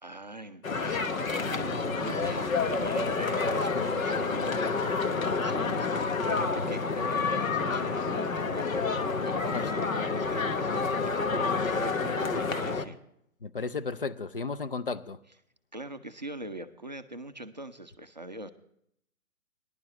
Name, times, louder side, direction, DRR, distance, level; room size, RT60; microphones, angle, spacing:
voice 1, 0.0-13.0 15.7-18.5, right 1 dB, 30° right, 0.4 m, -42 dB
sound 1, 0.6-12.8, left 4 dB, 65° left, 1.1 m, -29 dB
sound 2, 1.3-4.7, right 7 dB, 5° right, 1.0 m, -49 dB
voice 2, 9.5-9.8 13.4-15.2, left 4 dB, 40° left, 0.5 m, -34 dB
20.0 x 11.0 x 3.0 m
figure-of-eight pair, 135°, 44 cm